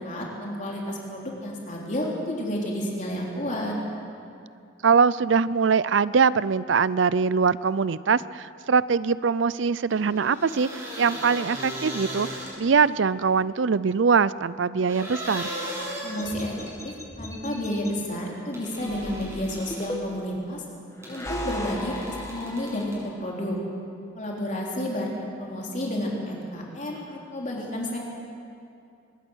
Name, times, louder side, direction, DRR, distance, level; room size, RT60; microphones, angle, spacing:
voice 1, 0.0-3.7 16.0-16.5 16.8-20.6 21.1-23.6 24.1-25.1 25.4-28.0, left 1 dB, 40° left, -2 dB, 3.4 m, -31 dB
voice 2, 4.8-10.7 11.0-12.3 12.6-15.5, right 5 dB, 85° right, 18 dB, 0.5 m, -22 dB
sound 1, 9.9-12.9 14.9-16.8 18.5-20.0 21.0-23.0, equal, 15° right, 7.2 m, -37 dB
sound 2, 16.2-17.9 18.8-20.4 21.0-23.1, left 1 dB, 15° left, 1.8 m, -37 dB
24.0 x 20.0 x 6.4 m, 2.5 s
head